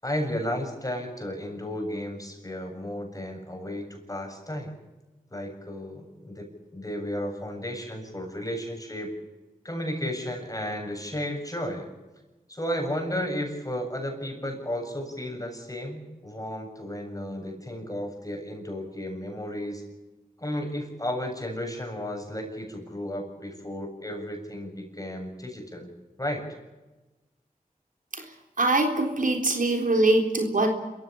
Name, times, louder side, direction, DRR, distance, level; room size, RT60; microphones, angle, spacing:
voice 1, 0.0-4.7 5.3-9.1 9.6-11.9 12.5-19.8 20.4-25.9 26.2-26.4, equal, 25° left, 3 dB, 7.5 m, -33 dB
voice 2, 28.6-30.7, right 2 dB, 65° right, 3 dB, 3.8 m, -23 dB
27.0 x 15.5 x 9.0 m, 1.1 s
wide cardioid pair, 50°, 15 cm